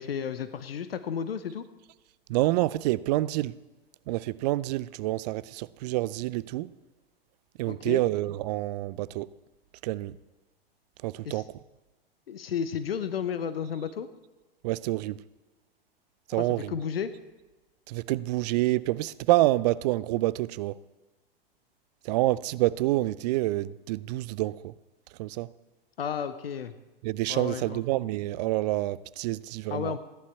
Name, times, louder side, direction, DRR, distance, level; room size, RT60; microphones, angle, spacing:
voice 1, 0.0-1.6 7.7-8.0 11.2-11.4 12.3-14.1 16.3-17.1 26.0-26.7 27.3-27.8 29.7-30.0, left 7 dB, 75° left, 0.8 m, -33 dB
voice 2, 2.3-3.6 4.1-6.7 7.6-9.3 9.8-10.2 11.0-11.5 14.6-15.2 16.3-16.7 17.9-20.8 22.0-24.7 25.2-25.5 27.0-29.9, right 17 dB, 45° right, 0.4 m, -27 dB
14.5 x 11.0 x 4.4 m
figure-of-eight pair, 95°, 30 cm